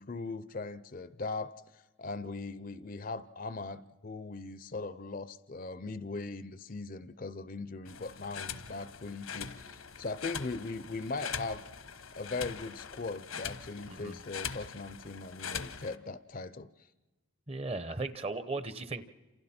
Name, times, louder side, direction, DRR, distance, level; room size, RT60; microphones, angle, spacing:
voice 1, 0.0-11.6 12.2-16.7, left 3 dB, 40° left, 15 dB, 0.6 m, -39 dB
sound 1, 7.9-16.0, left 7 dB, 80° left, 1.2 m, -42 dB
voice 2, 13.9-14.2 17.5-19.0, right 3 dB, 30° right, 12 dB, 0.9 m, -37 dB
29.0 x 28.0 x 4.4 m, 1.2 s
head